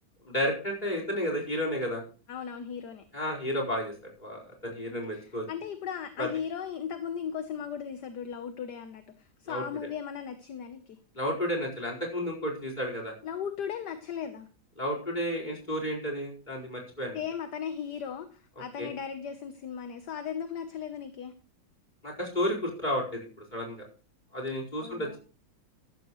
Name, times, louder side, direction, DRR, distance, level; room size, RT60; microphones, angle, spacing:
voice 1, 0.2-2.0 3.1-3.9 4.2-5.4 6.2-6.3 9.5-9.6 11.2-13.1 14.8-17.2 18.8-18.9 22.0-23.3 23.5-23.8 24.3-25.2, equal, 20° left, 0 dB, 4.8 m, -32 dB
voice 2, 2.3-3.0 4.9-11.0 13.2-14.5 17.1-21.3 24.8-25.2, left 8 dB, 60° left, 9 dB, 1.5 m, -37 dB
14.0 x 13.5 x 3.1 m, 0.36 s
omnidirectional pair, 2.2 m